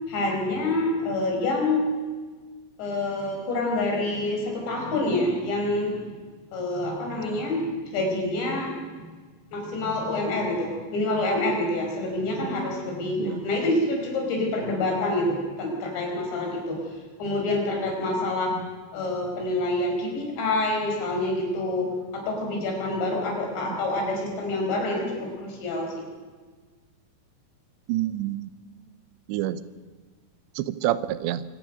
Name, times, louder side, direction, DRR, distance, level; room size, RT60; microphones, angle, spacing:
voice 1, 0.1-1.9 2.8-6.0 6.5-7.7 7.9-8.7 9.5-16.8 17.2-18.5 18.9-21.9 22.1-25.9, left 2 dB, 80° left, 1 dB, 7.0 m, -27 dB
voice 2, 27.9-28.5 29.3-29.6 30.6-31.4, right 13 dB, 90° right, 14 dB, 3.1 m, -28 dB
25.0 x 18.0 x 6.7 m, 1.5 s
omnidirectional pair, 5.0 m